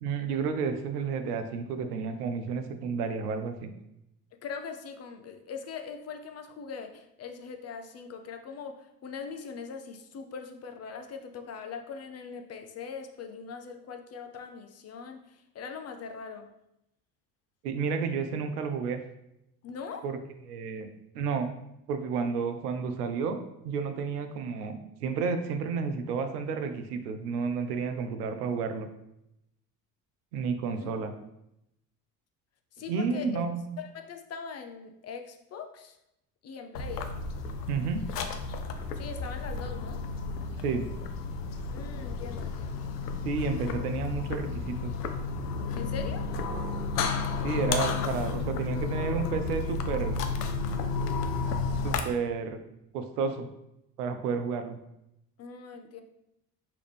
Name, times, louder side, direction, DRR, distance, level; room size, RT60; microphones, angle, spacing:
voice 1, 0.0-3.7 17.6-19.0 20.0-20.2 20.5-20.9 21.1-21.5 21.9-28.9 30.3-31.1 32.9-33.6 37.7-38.0 40.6-40.9 43.2-44.9 47.4-50.1 51.4-52.6 52.9-53.5 54.0-54.8, right 5 dB, 80° right, 8 dB, 0.6 m, -31 dB
voice 2, 4.4-16.5 19.6-20.1 30.7-30.9 32.8-33.4 33.8-36.0 36.4-37.1 38.9-40.0 41.7-42.8 45.7-46.3 55.4-56.0, left 6 dB, 35° left, 6 dB, 0.6 m, -41 dB
sound 1, 36.7-52.0, left 4 dB, 85° left, 0.5 m, -32 dB
4.9 x 2.9 x 3.3 m, 0.83 s
hypercardioid pair, 60°, 46 cm